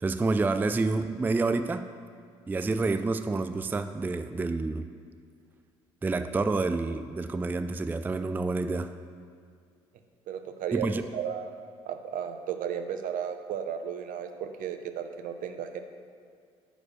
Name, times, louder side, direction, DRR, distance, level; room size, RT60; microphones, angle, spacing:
voice 1, 0.0-1.9 2.5-4.9 6.0-8.9 10.7-11.0, right 3 dB, 10° right, 10 dB, 0.3 m, -28 dB
voice 2, 10.3-11.5 11.8-15.8, right 8 dB, 60° right, 8 dB, 0.6 m, -34 dB
6.1 x 5.0 x 6.3 m, 2.1 s
hypercardioid pair, 50°, 16 cm